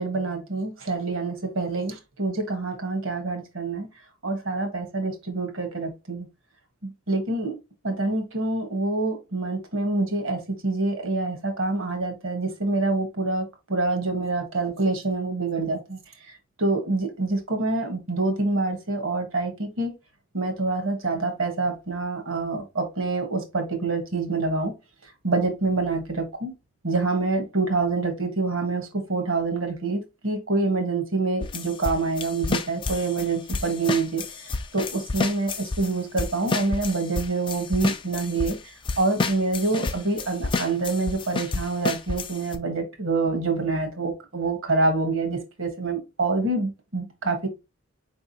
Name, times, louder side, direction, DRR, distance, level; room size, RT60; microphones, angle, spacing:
voice 1, 0.0-3.9 4.2-6.3 6.8-7.5 7.8-16.0 16.6-19.9 20.3-24.7 25.2-26.5 26.8-34.2 34.7-38.6 39.0-47.5, right 3 dB, 65° right, 1.3 m, -26 dB
sound 1, 31.4-35.9 36.2-38.5 38.8-42.6, left 3 dB, 25° left, 0.4 m, -29 dB
4.8 x 3.5 x 2.8 m
head